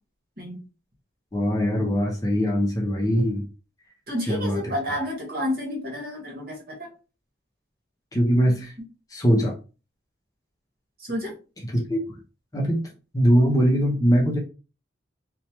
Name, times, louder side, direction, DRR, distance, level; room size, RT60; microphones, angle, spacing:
voice 1, 1.3-3.5 4.3-4.6 8.1-8.7 9.1-9.5 11.7-12.2 12.5-12.8 13.1-14.4, equal, 20° left, -1 dB, 0.6 m, -21 dB
voice 2, 4.1-6.9 11.0-11.3, left 1 dB, 55° right, -1 dB, 1.3 m, -30 dB
3.0 x 2.2 x 2.9 m, 0.33 s
head